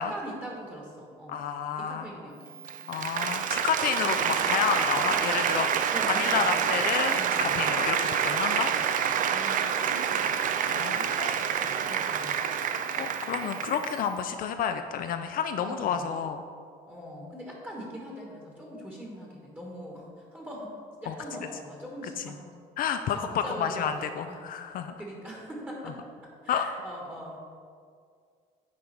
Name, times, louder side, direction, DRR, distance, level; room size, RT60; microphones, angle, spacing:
voice 1, 0.0-1.5 1.8-2.6 5.9-6.7 7.1-7.7 8.5-8.8 9.2-12.8 13.9-14.0 15.6-16.2 16.9-20.7 21.0-22.4 22.9-24.4 25.0-26.0 26.4-27.4, equal, 10° right, -3 dB, 1.4 m, -42 dB
voice 2, 1.3-2.1 2.9-8.7 10.7-11.4 13.0-16.4 21.1-21.2 22.8-24.9 26.5-26.6, left 7 dB, 55° left, 8 dB, 0.4 m, -30 dB
Applause, 2.5-14.1, right 8 dB, 50° right, 0.4 m, -27 dB
9.5 x 4.0 x 4.4 m, 2.1 s
cardioid pair, 110°, 17 cm